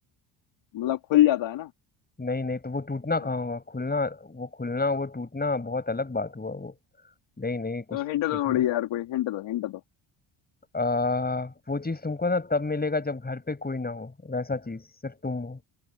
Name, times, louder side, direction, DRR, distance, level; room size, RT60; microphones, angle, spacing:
voice 1, 0.7-1.7 7.9-9.8, left 13 dB, 70° left, 3.1 m, -25 dB
voice 2, 2.2-6.7 7.4-8.0 8.5-8.6 10.7-15.6, left 3 dB, 20° left, 7.4 m, -30 dB
supercardioid pair, 70°, 46 cm